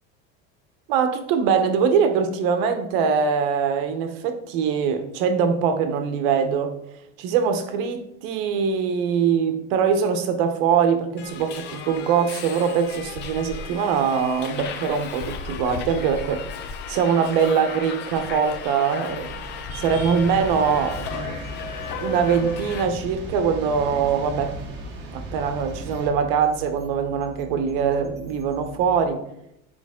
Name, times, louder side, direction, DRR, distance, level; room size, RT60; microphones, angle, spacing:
voice 1, 0.9-6.7 7.2-21.5 22.0-24.5 25.1-29.2, right 6 dB, 65° right, 7 dB, 1.0 m, -23 dB
Subway metro underground, 11.2-22.8, left 5 dB, 35° left, 0.7 m, -35 dB
sound 1, 19.1-29.0, right 4 dB, 10° right, 0.4 m, -43 dB
sound 2, 19.7-26.1, right 1 dB, 35° right, 1.4 m, -36 dB
10.0 x 4.7 x 3.6 m, 0.79 s
cardioid pair, 175°, 30 cm